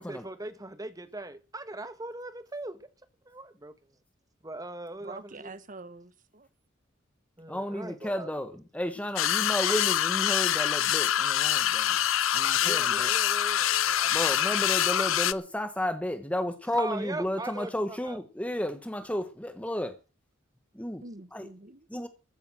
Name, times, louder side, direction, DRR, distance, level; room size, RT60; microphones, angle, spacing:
voice 1, 0.0-2.9 3.2-3.7 4.4-5.6 7.4-8.3 12.6-14.5 16.7-18.2, right 2 dB, 20° right, 1.4 m, -40 dB
voice 2, 5.0-6.5 21.0-21.8, right 3 dB, 40° right, 1.1 m, -45 dB
voice 3, 7.5-12.0 12.3-13.1 14.1-20.0 20.7-21.0 21.3-21.5 21.9-22.1, left 1 dB, 5° left, 1.1 m, -32 dB
sound 1, 9.2-15.3, left 11 dB, 80° left, 0.7 m, -25 dB
14.5 x 8.9 x 7.6 m
head